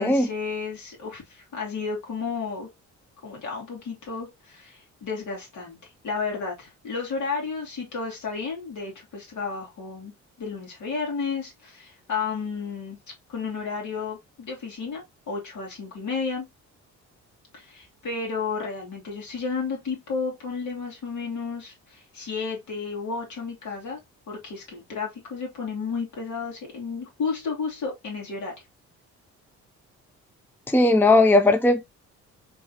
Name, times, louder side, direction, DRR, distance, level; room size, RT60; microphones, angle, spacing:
voice 1, 0.0-2.7 3.2-10.1 10.4-13.0 13.3-16.4 17.5-24.0 24.3-28.5, left 5 dB, 70° left, 3.1 m, -32 dB
voice 2, 30.7-31.9, left 2 dB, 5° left, 0.6 m, -18 dB
4.5 x 3.7 x 2.9 m
cardioid pair, 90°, 30 cm